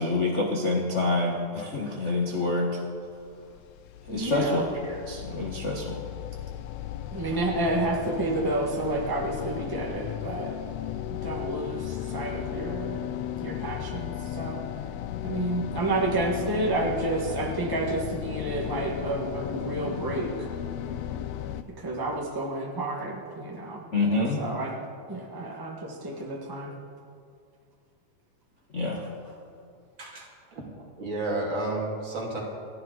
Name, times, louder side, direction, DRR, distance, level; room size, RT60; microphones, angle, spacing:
voice 1, 0.0-2.8 4.1-6.0 23.9-24.4 28.7-29.1, left 2 dB, 40° left, -1 dB, 1.1 m, -27 dB
sound 1, 3.2-21.6, left 11 dB, 75° left, 1.6 m, -35 dB
voice 2, 4.1-4.7 7.1-10.6 11.1-13.0 13.4-14.6 15.2-20.5 21.8-23.8 24.4-26.8, right 2 dB, 20° right, -2 dB, 0.5 m, -30 dB
voice 3, 31.0-32.4, right 2 dB, 40° right, -2 dB, 3.0 m, -31 dB
29.0 x 11.0 x 4.0 m, 2.3 s
omnidirectional pair, 3.6 m